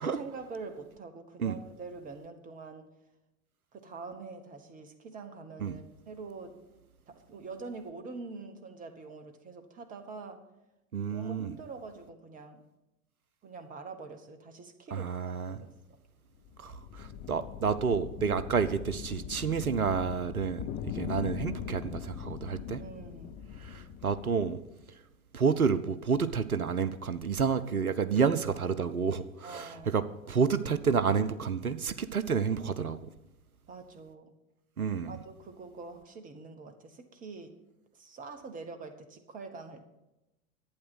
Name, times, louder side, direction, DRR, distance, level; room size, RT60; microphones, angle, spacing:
voice 1, 0.0-2.9 3.7-6.6 7.1-10.4 11.1-12.6 13.4-15.7 22.8-23.4 29.4-29.9 33.7-34.3 35.0-37.5 37.9-39.9, right 4 dB, 20° right, 8 dB, 1.2 m, -45 dB
voice 2, 10.9-11.5 14.9-15.6 16.6-22.8 23.6-24.6 25.3-33.0 34.8-35.1, right 6 dB, 85° right, 13 dB, 0.7 m, -30 dB
sound 1, 16.3-24.8, left 9 dB, 20° left, 0.4 m, -41 dB
11.5 x 8.8 x 6.2 m, 0.95 s
figure-of-eight pair, 95°, 42 cm